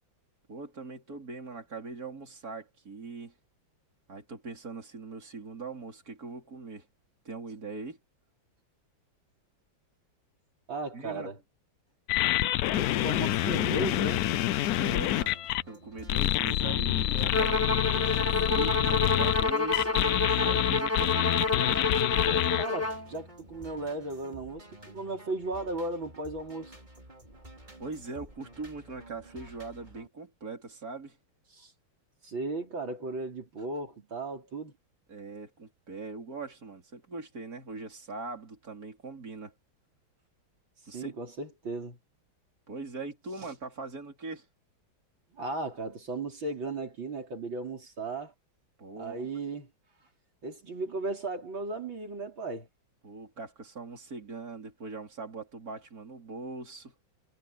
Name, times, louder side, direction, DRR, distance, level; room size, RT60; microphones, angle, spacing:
voice 1, 0.5-3.3 4.1-6.9 7.2-8.0 10.9-11.3 14.8-15.4 15.7-21.5 27.8-31.2 35.1-39.5 40.9-41.1 42.7-44.5 48.8-49.3 53.0-56.9, right 3 dB, 45° right, 4.8 m, -41 dB
voice 2, 10.7-11.4 12.8-14.3 22.5-26.8 31.5-31.7 32.2-34.7 40.9-42.0 45.3-48.3 49.0-49.7 50.4-52.7, right 2 dB, 70° right, 4.7 m, -36 dB
sound 1, 12.1-15.6 16.1-22.7, left 14 dB, 80° left, 0.8 m, -27 dB
sound 2, 14.8-30.1, right 1 dB, 20° right, 4.4 m, -51 dB
Bowed string instrument, 17.3-23.1, left 3 dB, 10° left, 1.4 m, -28 dB
omnidirectional pair, 2.2 m